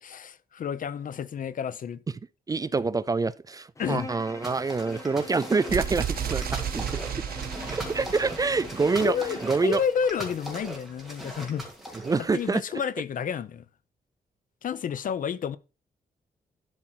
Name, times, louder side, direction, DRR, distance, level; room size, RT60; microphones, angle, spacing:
voice 1, 0.0-2.0 3.8-4.1 9.0-13.6 14.6-15.6, left 7 dB, 60° left, 0.7 m, -31 dB
voice 2, 2.5-6.9 7.2-7.3 7.7-9.1 9.4-9.8 12.1-12.6, right 4 dB, 25° right, 0.4 m, -26 dB
Bowed string instrument, 3.7-9.8, left 2 dB, 20° left, 1.1 m, -44 dB
sound 1, 4.4-12.5, right 1 dB, ahead, 2.6 m, -40 dB
sound 2, 5.7-9.6, right 8 dB, 75° right, 1.2 m, -33 dB
12.0 x 4.4 x 6.1 m
wide cardioid pair, 175°, 16 cm